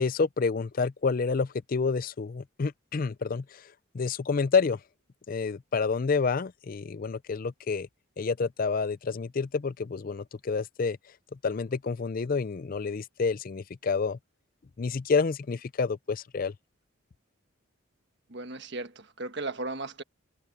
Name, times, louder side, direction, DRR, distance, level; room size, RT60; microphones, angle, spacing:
voice 1, 0.0-4.8 5.3-7.9 8.2-11.0 11.4-14.2 14.8-16.5, left 4 dB, 40° left, 0.4 m, -29 dB
voice 2, 18.3-20.0, right 2 dB, 55° right, 1.5 m, -36 dB
head